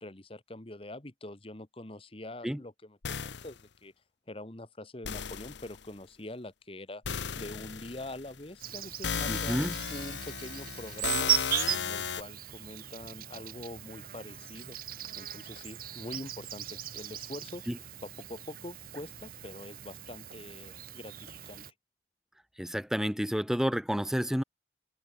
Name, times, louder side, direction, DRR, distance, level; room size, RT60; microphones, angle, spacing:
voice 1, 0.0-3.9 4.3-7.0 7.4-9.6 9.9-11.3 11.7-14.8 15.2-17.7 18.0-21.6, left 1 dB, 30° left, 1.5 m, -44 dB
sound 1, 3.0-3.6 5.0-5.8 7.1-8.4 9.0-12.2, left 7 dB, 90° left, 0.9 m, -35 dB
Insect, 8.6-21.7, right 11 dB, 55° right, 1.2 m, -38 dB
voice 2, 9.3-9.7 17.7-17.8 22.6-24.4, equal, 5° right, 0.5 m, -30 dB
head